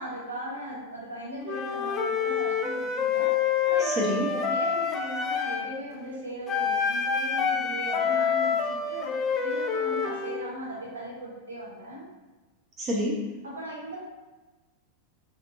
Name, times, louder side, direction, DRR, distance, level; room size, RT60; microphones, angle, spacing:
voice 1, 0.0-3.3 3.6-12.0 13.4-14.0, right 1 dB, 75° right, -4 dB, 0.9 m, -38 dB
Wind instrument woodwind instrument, 1.5-5.7 6.5-10.4, left 6 dB, 20° left, 0.4 m, -27 dB
voice 2, 3.8-4.3 12.8-13.2, equal, 30° right, -2 dB, 0.6 m, -27 dB
4.2 x 2.5 x 2.6 m, 1.2 s
figure-of-eight pair, 90°, 0 cm